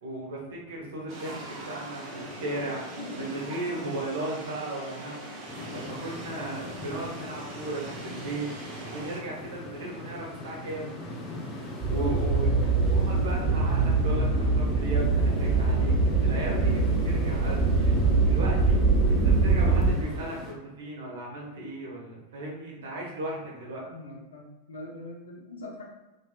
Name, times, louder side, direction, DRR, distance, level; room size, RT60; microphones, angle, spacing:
voice 1, 0.0-5.3 5.7-8.5 8.9-10.9 11.9-12.5 12.8-15.9 16.2-18.8 19.1-23.8, right 1 dB, 65° right, -3 dB, 1.0 m, -36 dB
sound 1, 1.1-9.2, right 1 dB, 40° right, 0.9 m, -41 dB
sound 2, 5.5-20.5, left 1 dB, 30° left, 0.7 m, -41 dB
sound 3, 11.8-19.9, right 3 dB, 10° right, 1.0 m, -23 dB
voice 2, 23.8-25.8, left 2 dB, 70° left, -3 dB, 0.8 m, -43 dB
3.2 x 2.8 x 2.3 m, 1.1 s
figure-of-eight pair, 90°, 0 cm